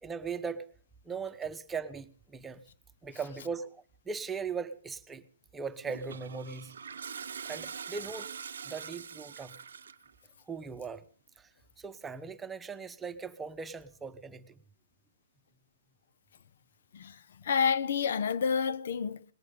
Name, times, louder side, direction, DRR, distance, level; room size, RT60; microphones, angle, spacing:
voice 1, 0.0-0.6 1.1-2.6 3.0-5.2 5.5-6.7 7.5-8.3 8.6-9.6 10.5-11.0 11.8-14.5, right 5 dB, 10° right, 1.0 m, -39 dB
Toilet flush, 5.8-10.1, right 7 dB, 90° right, 0.8 m, -43 dB
voice 2, 16.9-19.2, left 6 dB, 70° left, 0.7 m, -29 dB
19.0 x 18.5 x 3.7 m
hypercardioid pair, 150°, 0 cm